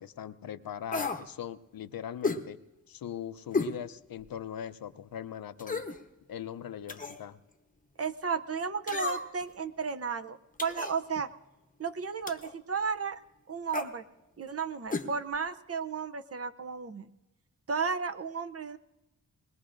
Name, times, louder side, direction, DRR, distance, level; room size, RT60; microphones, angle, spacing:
voice 1, 0.0-2.6 2.9-5.8 6.3-7.4, left 10 dB, 80° left, 13 dB, 0.6 m, -40 dB
sound 1, 0.9-1.3 2.2-2.4 3.5-3.8 4.2-4.3 5.6-6.0 6.9-7.2 8.9-9.4 10.6-11.0 12.3-12.5 13.7-13.9 14.9-15.1 15.3-15.4, left 3 dB, 25° left, 0.8 m, -32 dB
voice 2, 8.0-11.3 11.8-13.2 13.5-14.0 14.4-17.1 17.7-18.8, right 5 dB, 45° right, 9 dB, 0.6 m, -33 dB
21.0 x 20.5 x 2.5 m, 0.99 s
wide cardioid pair, 115°, 35 cm